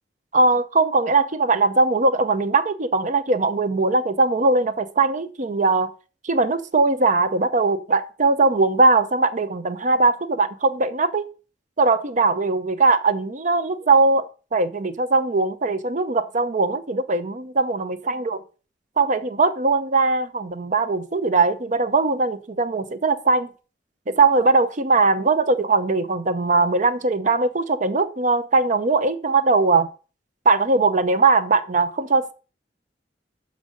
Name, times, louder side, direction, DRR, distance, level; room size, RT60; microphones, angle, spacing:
voice 1, 0.3-5.9 6.2-11.2 11.8-18.4 19.0-23.5 24.1-29.9 30.4-32.3, right 3 dB, 45° right, 0.7 m, -20 dB
6.3 x 5.2 x 6.4 m
head